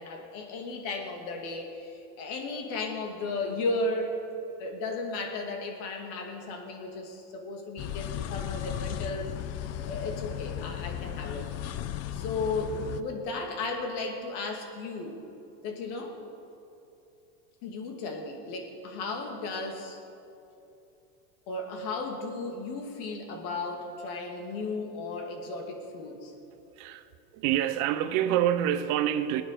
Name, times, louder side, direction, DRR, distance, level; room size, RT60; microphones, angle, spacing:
voice 1, 0.0-4.2 4.6-9.3 9.7-11.5 12.1-15.2 15.6-16.2 17.6-20.0 21.5-26.3, left 3 dB, 60° left, 2.6 m, -35 dB
sound 1, 7.8-13.0, left 11 dB, 35° left, 0.6 m, -35 dB
voice 2, 26.7-29.4, right 11 dB, 60° right, 1.0 m, -27 dB
18.5 x 9.6 x 6.8 m
supercardioid pair, 105°, 44 cm